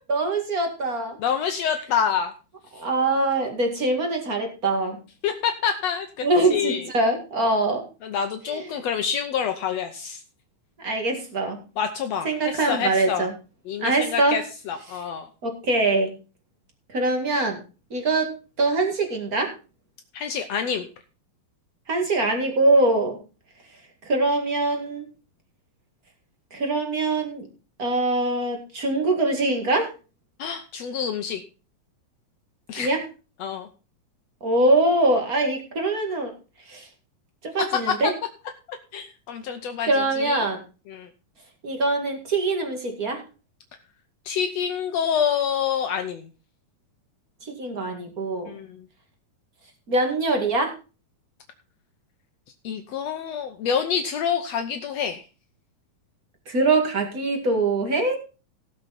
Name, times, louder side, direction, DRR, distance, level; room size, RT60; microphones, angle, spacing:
voice 1, 0.1-1.2 2.7-5.0 6.2-7.8 8.4-8.6 10.8-11.6 12.2-13.3 13.8-14.4 15.4-16.1 16.9-17.6 17.9-18.3 18.6-19.5 21.9-23.2 24.1-25.0 26.5-27.5 27.8-29.9 32.8-33.0 34.4-36.3 36.7-36.9 37.4-38.1 39.9-40.6 41.6-43.2 47.4-48.5 49.9-50.7 56.5-58.2, right 2 dB, 30° right, 4 dB, 1.9 m, -23 dB
voice 2, 1.2-2.3 5.2-6.9 8.0-10.2 11.8-13.3 13.7-15.3 20.1-20.9 30.4-31.4 32.7-32.9 33.4-33.7 37.6-38.1 38.7-40.4 40.9-41.1 44.2-46.3 48.5-48.9 52.6-55.2, left 7 dB, 85° left, 6 dB, 1.4 m, -27 dB
17.5 x 6.8 x 4.1 m, 0.33 s
omnidirectional pair, 4.2 m